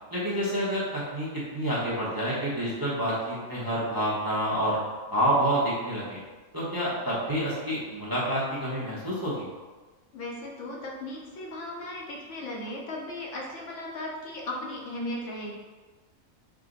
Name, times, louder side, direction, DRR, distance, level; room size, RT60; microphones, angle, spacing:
voice 1, 0.1-4.8 5.1-6.2 6.5-9.5, equal, 20° right, -8 dB, 0.7 m, -28 dB
voice 2, 10.1-15.5, left 1 dB, 65° left, -2 dB, 1.0 m, -36 dB
4.7 x 2.2 x 3.8 m, 1.3 s
omnidirectional pair, 1.4 m